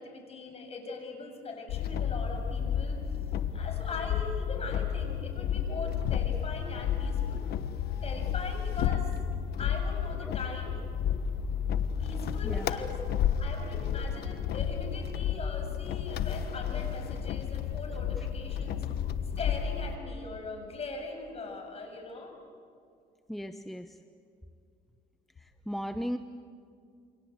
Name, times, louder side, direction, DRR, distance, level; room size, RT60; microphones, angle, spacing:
voice 1, 0.0-3.0 3.5-7.4 8.0-9.1 9.6-10.7 12.0-13.0 13.4-18.8 19.4-22.3, left 3 dB, 35° left, 3 dB, 7.6 m, -40 dB
sound 1, 1.7-20.0, left 8 dB, 70° left, 1.3 m, -32 dB
voice 2, 23.3-24.0 25.4-26.2, equal, ahead, 8 dB, 0.9 m, -37 dB
29.0 x 25.0 x 8.0 m, 2.4 s
cardioid pair, 110°, 17 cm